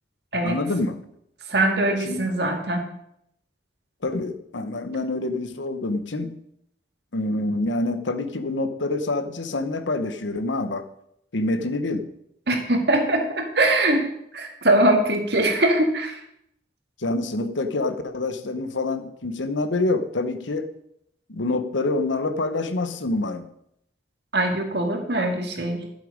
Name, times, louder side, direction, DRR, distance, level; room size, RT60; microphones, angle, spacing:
voice 1, 0.4-1.0 2.0-2.3 4.0-6.4 7.1-10.9 11.3-12.1 17.0-20.7 21.3-23.5, left 2 dB, 85° left, 10 dB, 1.0 m, -26 dB
voice 2, 1.5-2.9 12.5-16.2 24.3-25.8, right 1 dB, 60° right, 3 dB, 2.0 m, -22 dB
12.0 x 7.7 x 5.1 m, 0.76 s
head